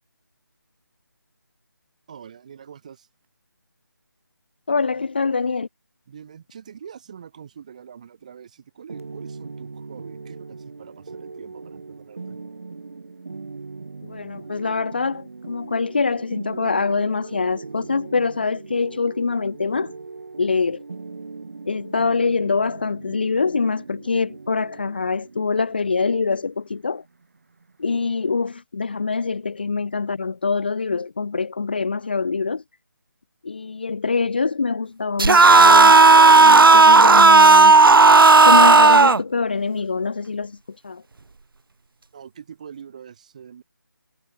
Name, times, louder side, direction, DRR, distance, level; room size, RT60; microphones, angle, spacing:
voice 1, 2.1-3.1 5.0-5.1 6.1-12.4 42.1-43.6, right 8 dB, 20° right, 5.8 m, -44 dB
voice 2, 4.7-5.7 14.0-19.9 20.4-20.8 21.7-27.0 27.8-32.6 33.4-36.0 36.4-37.8 38.4-40.6 40.8-41.0, left 4 dB, 25° left, 1.0 m, -24 dB
sound 1, 8.9-28.5, right 4 dB, 40° right, 2.2 m, -39 dB
sound 2, 35.2-39.2, right 3 dB, 80° right, 0.7 m, -10 dB
figure-of-eight pair, 175°, 11 cm